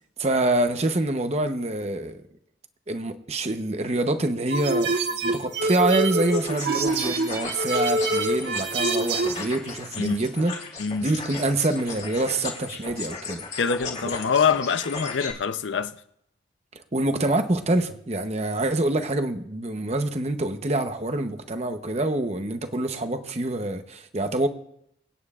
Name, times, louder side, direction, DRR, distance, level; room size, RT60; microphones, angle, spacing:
voice 1, 0.2-2.2 2.9-5.0 5.2-10.5 11.0-13.4 16.9-24.5, right 2 dB, 35° right, 0.8 m, -26 dB
sound 1, 4.5-9.4, right 2 dB, 65° right, 1.5 m, -25 dB
sound 2, 6.2-15.3, left 4 dB, 35° left, 2.1 m, -36 dB
voice 2, 10.8-11.1 13.6-16.0, left 6 dB, 80° left, 0.6 m, -25 dB
25.5 x 9.4 x 2.4 m
head